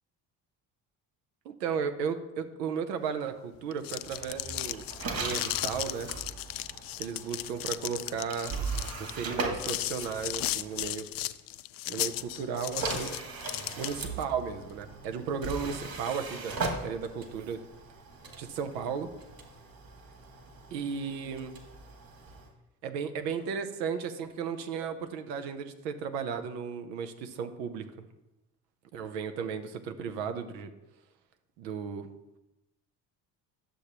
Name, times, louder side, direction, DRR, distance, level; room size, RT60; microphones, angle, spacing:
voice 1, 1.4-4.8 5.1-6.1 7.0-8.6 9.0-11.1 11.9-13.1 13.8-17.6 18.4-19.1 20.7-21.6 22.8-28.1 28.9-30.7 31.6-32.1, right 6 dB, 85° right, 9 dB, 0.8 m, -35 dB
sound 1, 3.6-14.2, left 15 dB, 45° left, 0.4 m, -35 dB
sound 2, 4.0-10.9 12.0-22.5, right 3 dB, 45° right, 1.9 m, -39 dB
11.5 x 6.8 x 2.9 m, 0.96 s
hypercardioid pair, 55°, 49 cm